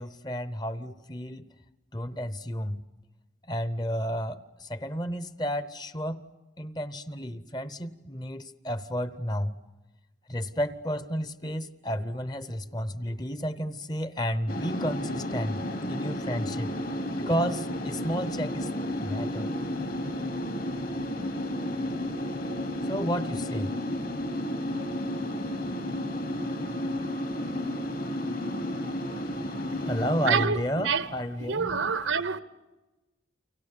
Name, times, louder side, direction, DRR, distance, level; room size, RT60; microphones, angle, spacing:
voice 1, 0.0-1.4 1.9-2.8 3.5-6.2 6.6-9.5 10.3-15.6 15.9-16.7 17.2-18.7 19.0-19.5 22.8-23.7 29.8-31.9, equal, 20° left, 0.8 m, -32 dB
sound 1, 14.5-30.5, left 1 dB, 50° left, 1.7 m, -32 dB
voice 2, 30.3-31.1 31.4-32.4, right 6 dB, 75° right, 1.0 m, -27 dB
30.0 x 24.0 x 6.7 m
head